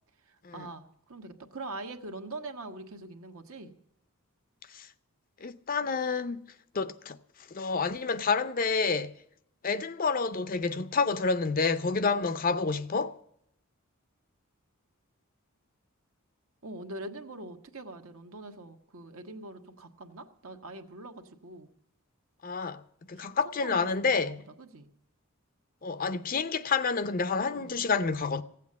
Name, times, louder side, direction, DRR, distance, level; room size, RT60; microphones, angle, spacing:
voice 1, 0.2-3.7 16.6-21.7 23.1-23.3 23.6-24.9 27.5-27.8, right 2 dB, 70° right, 1.3 m, -43 dB
voice 2, 5.4-6.4 6.7-7.2 7.5-9.1 9.6-13.2 22.4-22.8 23.1-24.4 25.8-28.4, left 4 dB, 40° left, 0.5 m, -29 dB
15.0 x 8.3 x 8.4 m
head